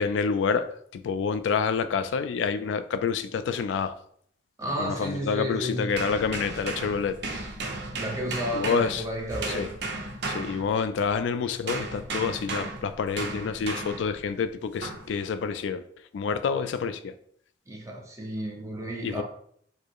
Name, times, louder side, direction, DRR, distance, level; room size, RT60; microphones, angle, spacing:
voice 1, 0.0-3.9 4.8-7.4 8.5-9.0 9.5-9.7 10.3-15.8 16.1-17.1 19.0-19.2, left 5 dB, 80° left, 0.3 m, -28 dB
voice 2, 4.6-5.9 8.0-9.8 17.7-19.2, equal, 15° right, 0.8 m, -32 dB
sound 1, 5.9-11.2 11.7-14.2 14.8-15.1, right 3 dB, 65° right, 0.8 m, -35 dB
4.6 x 2.0 x 4.6 m
head